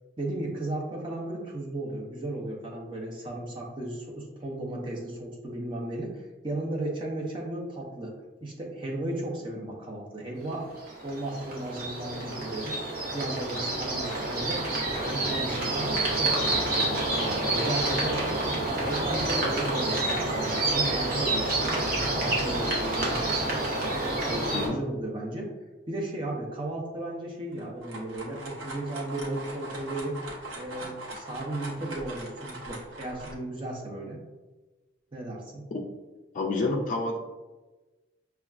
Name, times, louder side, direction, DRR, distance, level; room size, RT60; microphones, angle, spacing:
voice 1, 0.2-8.1 8.4-10.7 11.0-12.8 13.1-14.7 15.0-18.4 18.6-23.7 24.2-25.5 25.9-30.2 30.5-34.2 35.1-35.6, right 1 dB, 25° right, -2 dB, 0.6 m, -35 dB
sound 1, 10.8-24.7, right 2 dB, 50° right, 0.9 m, -28 dB
sound 2, 27.5-33.3, right 1 dB, 85° right, 0.9 m, -41 dB
voice 2, 36.3-37.2, left 2 dB, 40° left, 0 dB, 0.3 m, -28 dB
5.6 x 2.3 x 2.4 m, 1.2 s
head